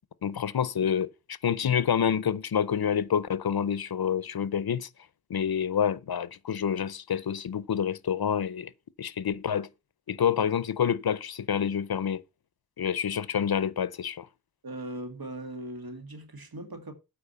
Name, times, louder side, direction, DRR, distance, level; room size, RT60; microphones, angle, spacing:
voice 1, 0.2-1.1 1.4-4.9 5.3-8.7 9.0-9.7 10.1-12.2 12.8-14.3, left 8 dB, 85° left, 0.6 m, -28 dB
voice 2, 14.6-16.9, right 1 dB, 75° right, 2.0 m, -39 dB
8.6 x 4.7 x 6.9 m
wide cardioid pair, 45°, 36 cm